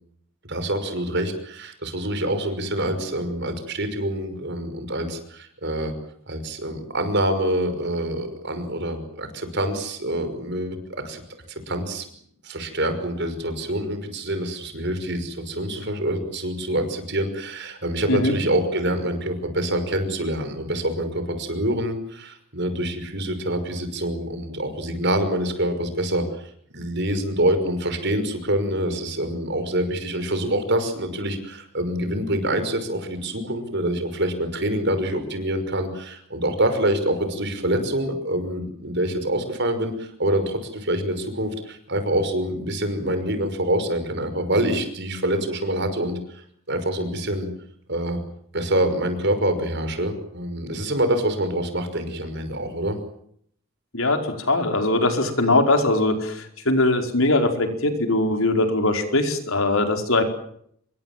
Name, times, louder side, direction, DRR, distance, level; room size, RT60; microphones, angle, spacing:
voice 1, 0.5-5.9 6.3-11.2 11.7-12.1 12.4-46.4 46.7-47.5 47.9-48.2 48.5-53.0, right 1 dB, 55° right, 9 dB, 5.8 m, -26 dB
voice 2, 53.9-60.2, left 2 dB, 75° left, 5 dB, 4.9 m, -21 dB
27.5 x 23.0 x 7.5 m, 0.68 s
head